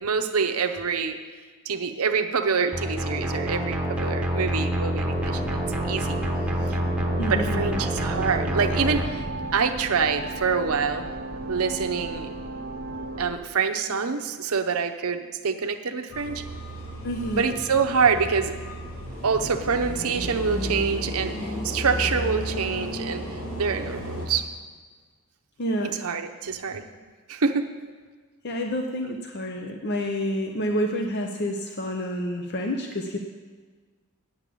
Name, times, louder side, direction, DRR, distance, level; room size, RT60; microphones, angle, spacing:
voice 1, 0.0-1.2 1.7-6.1 6.7-6.8 7.3-9.2 9.5-11.1 11.5-12.3 13.2-16.4 17.4-18.5 19.2-21.3 21.6-23.2 23.6-24.5 25.8-26.9 27.3-27.7, right 5 dB, 80° right, 6 dB, 0.8 m, -26 dB
sound 1, 2.7-9.1, equal, 5° right, 1.1 m, -27 dB
sound 2, 5.1-13.3, right 2 dB, 40° right, 0.8 m, -35 dB
voice 2, 7.2-7.8 17.0-17.5 25.6-25.9 28.4-33.2, equal, 50° left, 3 dB, 0.7 m, -28 dB
sound 3, 16.1-24.3, equal, 75° left, 2.5 m, -33 dB
8.9 x 7.0 x 8.4 m, 1.5 s
head